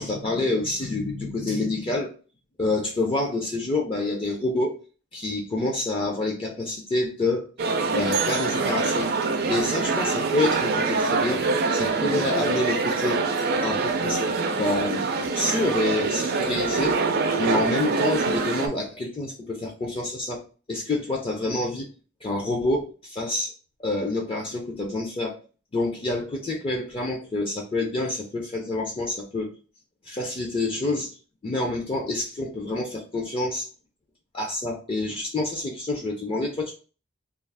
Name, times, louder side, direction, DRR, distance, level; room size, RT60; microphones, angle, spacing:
voice 1, 0.0-2.1 2.6-4.8 5.1-7.5 7.9-9.1 9.5-11.4 11.7-13.2 13.6-14.2 14.5-15.0 15.3-17.0 17.4-20.4 20.7-21.9 22.2-23.5 23.8-25.4 25.7-29.5 30.1-31.2 31.4-33.7 34.3-36.7, left 2 dB, 30° left, 0 dB, 0.4 m, -27 dB
sound 1, 7.6-18.7, right 4 dB, 55° right, 0.4 m, -25 dB
2.4 x 2.3 x 3.3 m, 0.37 s
head